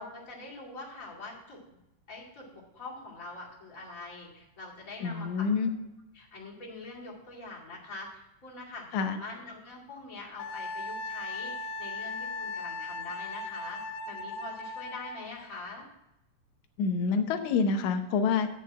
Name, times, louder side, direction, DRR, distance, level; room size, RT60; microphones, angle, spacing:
voice 1, 0.0-1.6 2.1-5.5 6.1-11.5 11.8-13.8 14.1-15.9, left 3 dB, 25° left, -5 dB, 2.3 m, -44 dB
voice 2, 5.0-5.7 8.9-9.2 16.8-18.5, left 5 dB, 75° left, 6 dB, 2.1 m, -27 dB
Wind instrument woodwind instrument, 10.4-15.3, left 3 dB, 90° left, 2.4 m, -37 dB
8.4 x 5.4 x 7.4 m, 0.86 s
omnidirectional pair, 3.8 m